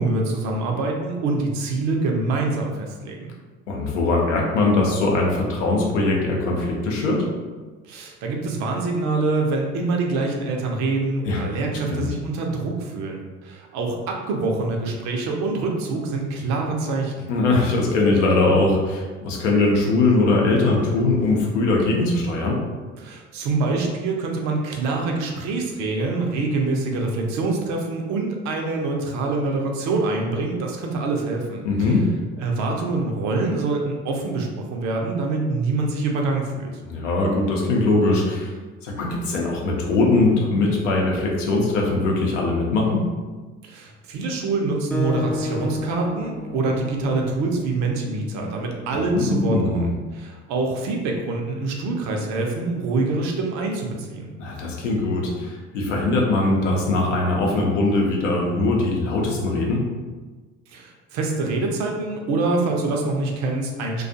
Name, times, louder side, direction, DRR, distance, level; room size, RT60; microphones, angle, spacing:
voice 1, 0.0-3.3 7.8-17.3 23.0-31.9 32.4-36.8 43.6-54.3 60.7-64.0, right 3 dB, 50° right, 1 dB, 0.6 m, -25 dB
voice 2, 3.7-7.2 11.2-11.4 11.9-12.1 17.3-22.6 31.6-32.1 36.8-38.5 38.8-43.0 48.9-49.9 54.4-59.8, left 2 dB, 75° left, -1 dB, 0.7 m, -21 dB
Acoustic guitar, 44.9-47.7, left 2 dB, 5° left, 0.4 m, -31 dB
2.4 x 2.3 x 2.6 m, 1.3 s
figure-of-eight pair, 60°, 37 cm